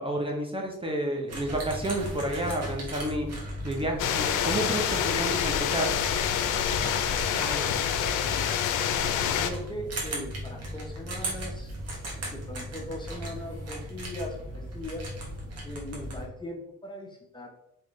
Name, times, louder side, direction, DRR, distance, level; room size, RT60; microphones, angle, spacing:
voice 1, 0.0-3.3 3.6-5.9, right 1 dB, 20° right, 0 dB, 0.8 m, -30 dB
sound 1, 1.3-16.3, right 1 dB, 55° right, 1.4 m, -37 dB
sound 2, 4.0-9.5, left 9 dB, 85° left, 0.5 m, -27 dB
voice 2, 7.2-8.6 9.2-11.7 12.1-15.1 15.6-17.5, left 1 dB, 15° left, 0 dB, 0.8 m, -40 dB
3.7 x 3.1 x 3.1 m, 0.80 s
cardioid pair, 90°, 30 cm